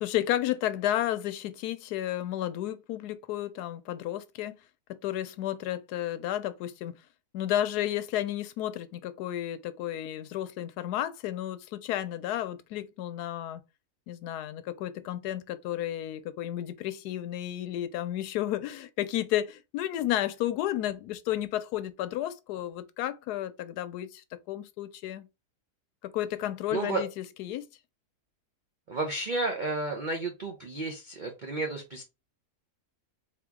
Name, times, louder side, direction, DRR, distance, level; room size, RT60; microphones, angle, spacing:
voice 1, 0.0-4.6 5.0-6.9 7.3-13.6 14.1-25.3 26.0-27.6, left 12 dB, 75° left, 1.1 m, -32 dB
voice 2, 26.7-27.0 28.9-32.0, right 2 dB, 50° right, 0.6 m, -32 dB
4.1 x 2.9 x 3.6 m
omnidirectional pair, 1.7 m